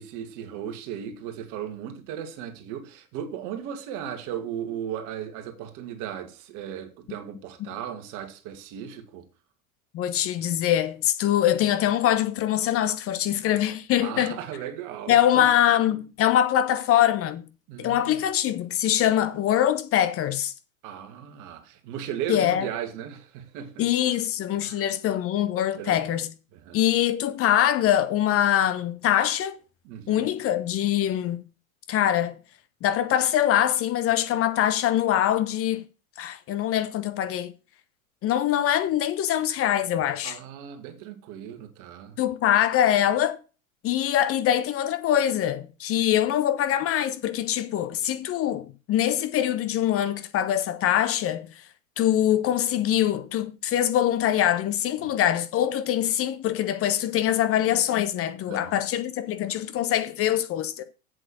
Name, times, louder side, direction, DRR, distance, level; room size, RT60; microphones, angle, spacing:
voice 1, 0.0-9.3 14.0-15.5 17.7-18.2 20.8-24.2 24.6-24.8 25.8-26.1 26.5-26.8 29.8-30.3 40.2-42.2 58.5-58.7, right 9 dB, 45° right, 2.1 m, -36 dB
voice 2, 9.9-14.4 15.1-17.5 17.8-20.5 22.3-22.7 23.8-26.3 26.7-29.6 30.1-31.4 31.9-32.3 32.8-35.8 36.2-37.5 38.2-40.4 42.2-43.4 43.8-51.5 52.0-60.8, left 11 dB, 30° left, 1.0 m, -23 dB
8.1 x 7.6 x 6.2 m
hypercardioid pair, 95°, 42 cm